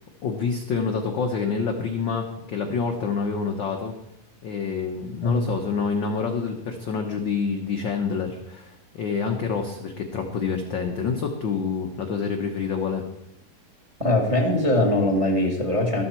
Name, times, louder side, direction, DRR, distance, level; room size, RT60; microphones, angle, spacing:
voice 1, 0.2-4.0 4.4-13.0, left 5 dB, 65° left, 4 dB, 1.2 m, -27 dB
voice 2, 14.0-16.0, left 1 dB, 15° right, 2 dB, 1.4 m, -21 dB
13.0 x 13.0 x 4.3 m, 0.84 s
omnidirectional pair, 3.3 m